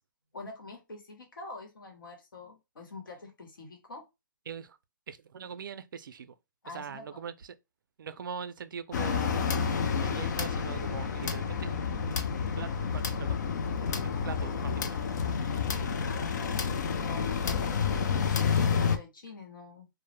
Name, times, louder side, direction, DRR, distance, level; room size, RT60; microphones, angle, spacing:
voice 1, 0.3-4.0 6.6-7.2 16.1-19.9, left 3 dB, 80° left, 1.0 m, -46 dB
voice 2, 4.5-4.8 5.1-6.3 6.7-7.5 8.0-15.0, right 7 dB, 75° right, 0.4 m, -42 dB
sound 1, 8.9-19.0, left 6 dB, 60° left, 0.4 m, -29 dB
2.0 x 2.0 x 3.0 m
hypercardioid pair, 155°, 11 cm